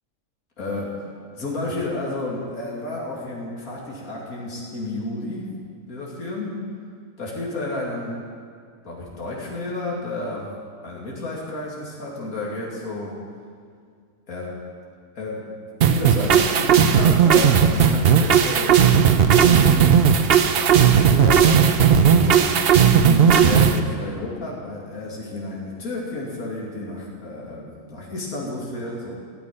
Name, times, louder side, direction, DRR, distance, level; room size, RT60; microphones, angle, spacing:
voice 1, 0.6-0.9 1.3-5.5 5.9-6.6 7.2-8.2 8.8-10.5 10.8-13.2 14.3-14.5 15.1-20.0 20.8-21.6 21.9-22.5 22.8-29.1, left 2 dB, 80° left, -4 dB, 3.0 m, -31 dB
sound 1, 15.8-23.8, right 7 dB, 50° right, 0.8 m, -16 dB
17.0 x 6.3 x 9.9 m, 2.1 s
omnidirectional pair, 1.5 m